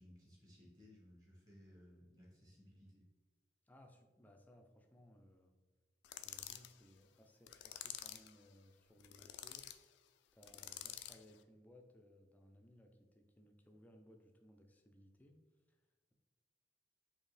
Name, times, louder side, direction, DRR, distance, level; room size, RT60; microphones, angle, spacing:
voice 1, 0.0-3.0, equal, 20° right, -4 dB, 1.3 m, -61 dB
voice 2, 3.7-5.6 6.2-9.7 10.3-15.4 15.7-16.1, left 1 dB, 10° left, 3 dB, 0.4 m, -64 dB
sound 1, 6.0-6.7 7.5-8.3 9.0-9.8 10.4-11.2, left 11 dB, 85° left, 0.3 m, -49 dB
4.5 x 2.9 x 3.2 m, 1.3 s
head